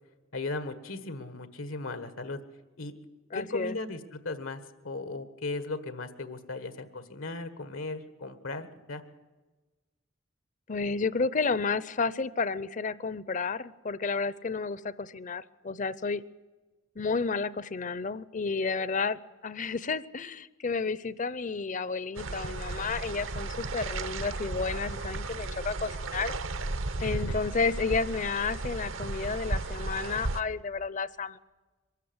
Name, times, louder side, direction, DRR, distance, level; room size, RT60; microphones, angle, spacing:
voice 1, 0.3-2.4 2.8-2.9 3.3-9.0 27.0-27.4, left 3 dB, 85° left, 10 dB, 1.6 m, -37 dB
voice 2, 3.3-3.8 10.7-16.2 17.0-26.3 27.0-31.4, left 4 dB, 40° left, 18 dB, 0.6 m, -31 dB
sound 1, 22.1-30.4, right 2 dB, 70° right, 0.9 m, -34 dB
23.5 x 13.5 x 9.6 m, 1.3 s
head